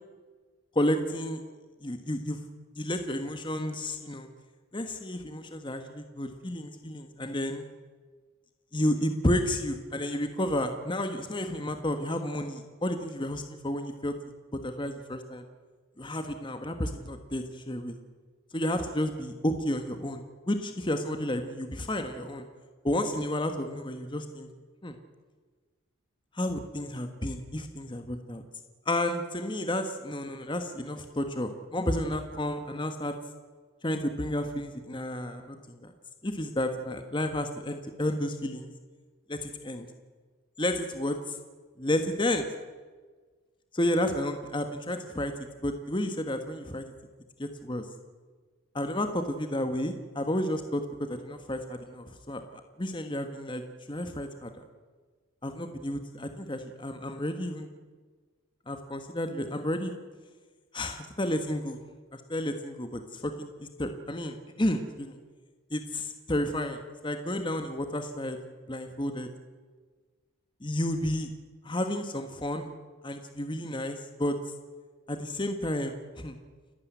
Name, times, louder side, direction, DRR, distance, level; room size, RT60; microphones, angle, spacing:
voice 1, 0.7-1.4 1.8-2.4 2.8-4.3 4.7-7.6 8.7-14.2 14.6-15.4 16.0-17.9 18.5-22.4 22.8-24.5 24.8-24.9 26.3-28.4 28.9-33.1 33.8-35.9 36.2-38.7 39.3-39.9 40.6-41.4 41.8-42.5 43.7-45.3 45.6-46.8 47.4-47.9 48.7-52.4 52.8-53.6 53.9-54.5 55.4-57.7 58.7-59.9 60.7-61.8 62.1-65.2 65.7-68.4 68.7-69.3 70.6-71.3 71.6-72.7 73.0-74.4 75.1-76.4, left 1 dB, 20° left, 7 dB, 1.2 m, -31 dB
29.0 x 12.0 x 9.3 m, 1.4 s
head